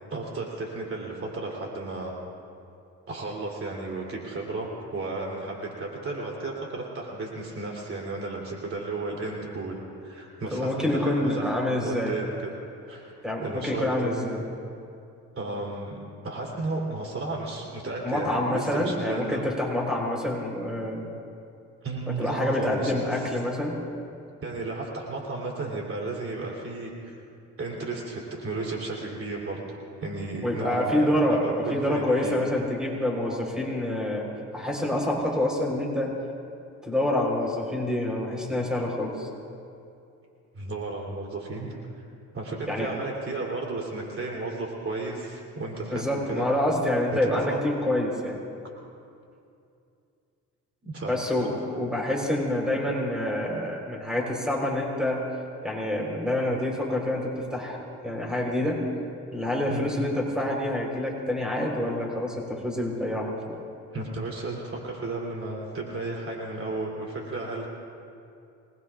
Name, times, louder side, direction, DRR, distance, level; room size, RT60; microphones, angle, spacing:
voice 1, 0.1-2.1 3.1-12.5 12.9-13.2 13.4-14.4 15.4-16.0 16.2-19.4 21.8-23.2 24.4-27.2 27.6-31.1 31.4-32.4 40.5-42.0 42.3-46.5 47.2-47.6 50.8-51.6 59.7-59.9 63.9-67.7, right 2 dB, 45° right, -2 dB, 3.6 m, -33 dB
voice 2, 10.5-12.2 13.2-14.4 18.0-21.1 22.2-23.8 30.4-34.3 34.5-36.1 36.8-39.3 42.7-42.9 45.9-48.4 51.1-55.2 55.6-58.9 59.3-63.6, left 1 dB, ahead, -1 dB, 4.1 m, -27 dB
27.0 x 21.0 x 2.5 m, 2.5 s
cardioid pair, 90°, 30 cm